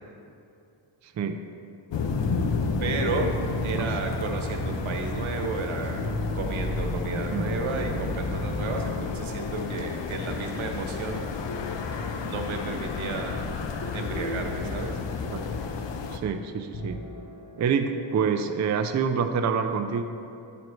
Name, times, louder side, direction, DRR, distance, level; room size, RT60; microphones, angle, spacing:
sound 1, 1.9-16.2, left 4 dB, 65° left, 0.7 m, -31 dB
sound 2, 2.2-10.5 11.1-12.0 13.8-15.5 16.6-19.2, equal, 35° left, 0.9 m, -37 dB
voice 1, 2.8-3.3 3.6-6.1 6.3-11.3 12.2-13.6 13.9-15.0, right 3 dB, 80° right, 3 dB, 1.2 m, -32 dB
voice 2, 16.1-17.0 17.6-20.0, right 6 dB, 40° right, 7 dB, 0.4 m, -27 dB
11.0 x 9.2 x 3.1 m, 2.6 s
wide cardioid pair, 125°, 47 cm